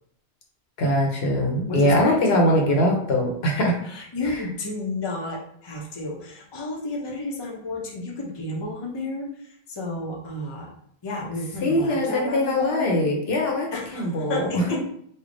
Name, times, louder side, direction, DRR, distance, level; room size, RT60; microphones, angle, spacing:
voice 1, 0.8-3.8 4.2-4.3 11.6-14.6, left 1 dB, 70° left, 0 dB, 1.0 m, -22 dB
voice 2, 1.7-2.5 3.8-10.7 11.0-12.8 13.7-14.8, left 2 dB, 30° left, -2 dB, 0.6 m, -32 dB
3.3 x 2.2 x 3.7 m, 0.66 s
omnidirectional pair, 1.1 m